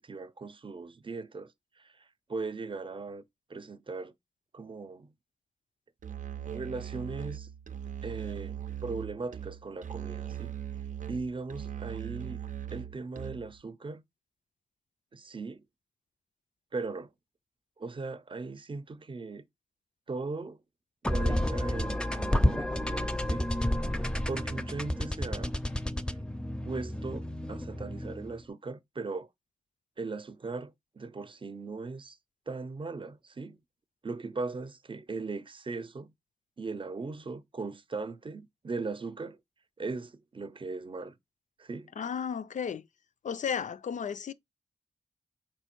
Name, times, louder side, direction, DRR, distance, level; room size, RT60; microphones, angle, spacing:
voice 1, 0.0-3.2 3.5-4.1 4.5-5.1 6.5-7.5 8.0-10.6 11.1-12.4 12.7-14.0 15.1-15.6 16.7-17.1 17.8-19.5 20.1-20.6 21.0-23.5 24.3-25.5 26.6-29.3 30.0-32.2 32.5-33.6 34.0-36.1 36.6-39.4 39.8-41.2 41.6-41.9, right 3 dB, 40° right, 0.6 m, -38 dB
Musical instrument, 6.0-13.6, right 10 dB, 85° right, 0.5 m, -39 dB
sound 1, 21.0-28.4, left 1 dB, 5° left, 0.5 m, -30 dB
voice 2, 42.0-42.8 43.2-44.3, left 7 dB, 75° left, 0.4 m, -33 dB
4.5 x 2.5 x 4.4 m
cardioid pair, 60°, 13 cm